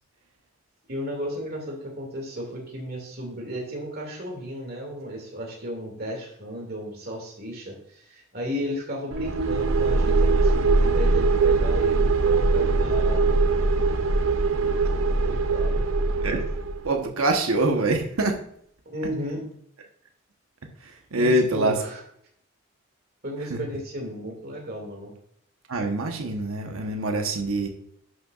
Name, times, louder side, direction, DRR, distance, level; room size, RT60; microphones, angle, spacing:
voice 1, 0.9-13.4 15.2-15.8 18.9-19.4 21.1-21.9 23.2-25.1, equal, 45° right, 1 dB, 2.2 m, -34 dB
sound 1, 9.1-16.9, right 3 dB, 65° right, 0.6 m, -22 dB
voice 2, 16.8-18.4 20.8-21.8 23.4-23.6 25.7-27.7, right 2 dB, 85° right, 4 dB, 1.0 m, -25 dB
11.0 x 6.6 x 2.4 m, 0.69 s
head